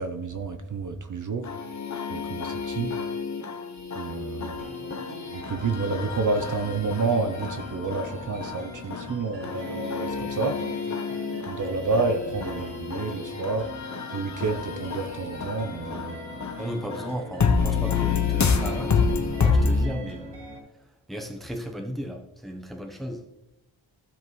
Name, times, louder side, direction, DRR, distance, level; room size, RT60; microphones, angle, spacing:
voice 1, 0.0-1.5 2.1-3.0 4.0-4.7 5.3-10.6 11.5-13.7 14.1-16.2, right 3 dB, 45° right, 0.6 m, -29 dB
sound 1, 1.4-19.9, left 5 dB, 40° left, 0.7 m, -29 dB
sound 2, 4.6-20.6, equal, 65° right, 1.8 m, -42 dB
voice 2, 16.6-20.4 21.1-23.2, equal, ahead, 0.7 m, -35 dB
15.0 x 5.2 x 3.1 m
wide cardioid pair, 170°, 46 cm